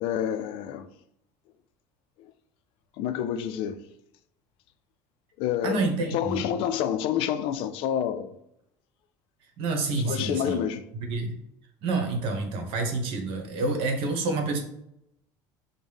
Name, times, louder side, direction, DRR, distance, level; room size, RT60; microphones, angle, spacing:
voice 1, 0.0-0.9 3.0-3.8 5.4-5.8 6.1-8.3 10.0-10.8, left 9 dB, 65° left, 0.4 m, -28 dB
voice 2, 5.6-6.4 9.6-10.6 10.9-11.4 11.8-14.6, right 3 dB, 65° right, 0.9 m, -28 dB
5.3 x 2.1 x 3.4 m
supercardioid pair, 100°, 10 cm